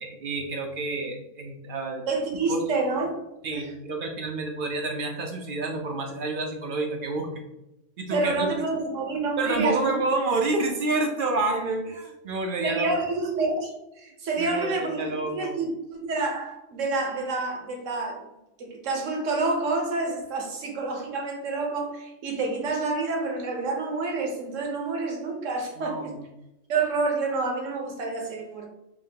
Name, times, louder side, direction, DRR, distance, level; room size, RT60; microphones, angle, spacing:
voice 1, 0.0-2.0 2.5-2.6 3.4-7.3 8.0-8.5 9.4-12.9 14.4-15.5 25.8-26.2, right 3 dB, 55° right, 2 dB, 0.6 m, -29 dB
voice 2, 2.1-3.2 3.5-3.7 8.1-9.9 12.6-13.7 14.0-18.2 18.6-26.1 26.7-28.7, right 3 dB, 70° right, 1 dB, 1.2 m, -28 dB
5.0 x 2.5 x 2.8 m, 0.93 s
omnidirectional pair, 1.4 m